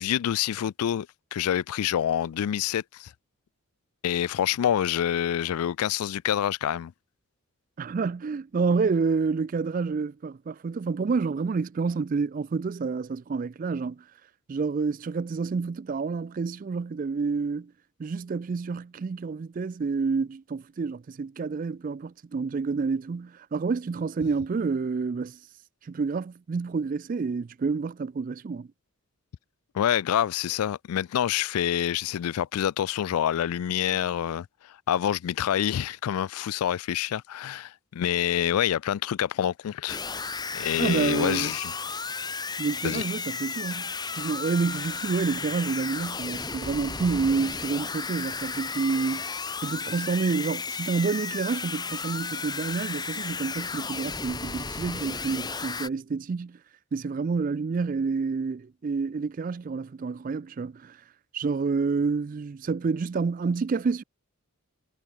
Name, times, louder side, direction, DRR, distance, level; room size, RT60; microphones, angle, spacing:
voice 1, 0.0-3.1 4.0-6.9 29.7-40.0 40.5-41.7 42.8-43.0, left 10 dB, 85° left, 0.3 m, -27 dB
voice 2, 7.8-14.0 14.5-17.7 18.0-25.4 25.8-28.7 40.8-41.5 42.6-49.4 49.6-56.6 56.9-61.0 61.3-64.0, right 4 dB, 35° right, 0.3 m, -28 dB
sound 1, 39.9-55.9, left 5 dB, 20° left, 1.2 m, -34 dB
head